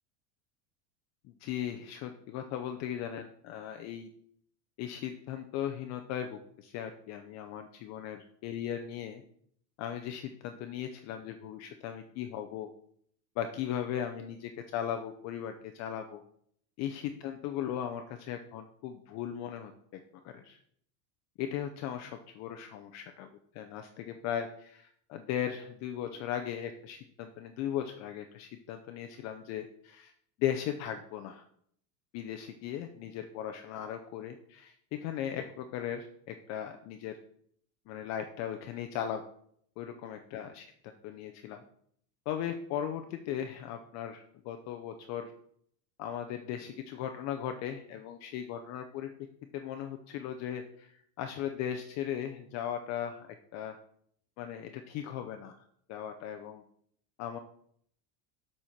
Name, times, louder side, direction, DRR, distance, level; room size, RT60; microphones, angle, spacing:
voice 1, 1.2-4.1 4.8-9.2 9.8-12.7 13.4-16.2 16.8-19.7 20.2-20.6 21.4-30.1 30.4-31.4 32.1-34.7 35.0-37.2 37.9-39.2 39.8-40.7 41.0-41.6 42.3-45.3 46.0-49.1 49.5-53.3 53.5-53.8 54.4-55.5 55.9-56.6 57.2-57.4, left 10 dB, 35° left, 6 dB, 0.5 m, -37 dB
7.2 x 4.3 x 6.3 m, 0.66 s
supercardioid pair, 150°, 48 cm